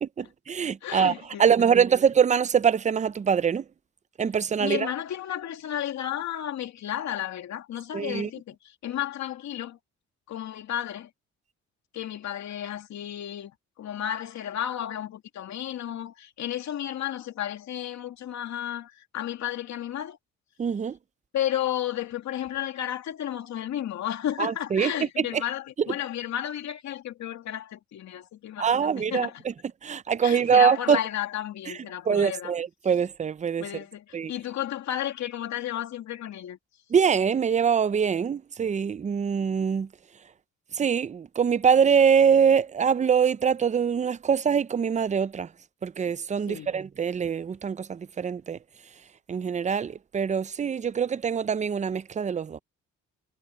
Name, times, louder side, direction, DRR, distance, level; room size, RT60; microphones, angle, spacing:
voice 1, 0.0-3.6 4.2-4.9 7.9-8.3 20.6-21.0 24.4-25.4 25.8-25.9 28.6-29.5 29.8-31.0 31.7-31.8 32.1-33.7 34.1-34.3 36.9-39.9 40.7-45.5 45.8-48.6 49.3-52.6, right 7 dB, 25° right, 0.5 m, -24 dB
voice 2, 0.8-1.7 4.6-9.8 10.3-11.1 11.9-13.5 13.8-20.2 21.3-29.4 30.2-32.5 33.6-36.6 46.5-46.7, left 11 dB, 70° left, 2.6 m, -33 dB
cardioid pair, 115°, 29 cm